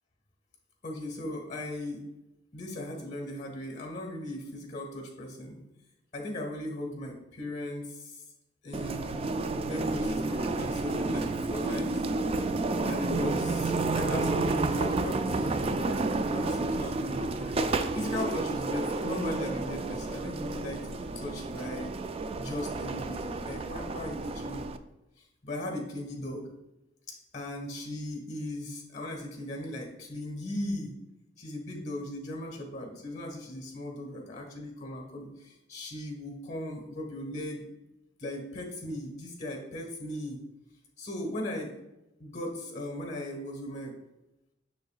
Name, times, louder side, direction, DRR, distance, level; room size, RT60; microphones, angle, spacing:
voice 1, 0.8-2.1 2.5-5.6 6.1-8.2 8.6-9.3 9.6-12.0 12.8-21.9 22.4-24.7 25.2-26.5 27.1-30.9 31.4-37.6 38.2-40.4 41.0-41.7 42.2-43.9, left 1 dB, 40° left, 2 dB, 1.5 m, -38 dB
sound 1, 8.7-24.8, right 3 dB, 35° right, 0.3 m, -31 dB
6.7 x 6.4 x 2.4 m, 0.93 s
head